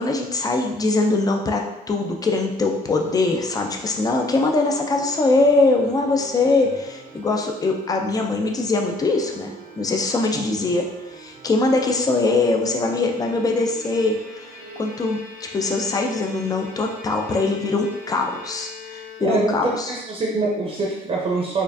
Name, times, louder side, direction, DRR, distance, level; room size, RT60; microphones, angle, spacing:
voice 1, 0.0-9.5 9.8-10.9 11.1-14.5 14.8-15.2 15.5-19.9, left 3 dB, 20° left, 2 dB, 0.5 m, -22 dB
sound 1, 2.8-14.8, right 5 dB, 75° right, 0.8 m, -43 dB
Bowed string instrument, 12.7-19.7, left 4 dB, 55° left, 0.8 m, -42 dB
voice 2, 19.2-21.6, right 3 dB, 35° right, -3 dB, 0.7 m, -24 dB
4.2 x 2.4 x 2.7 m, 0.95 s
cardioid pair, 110°, 17 cm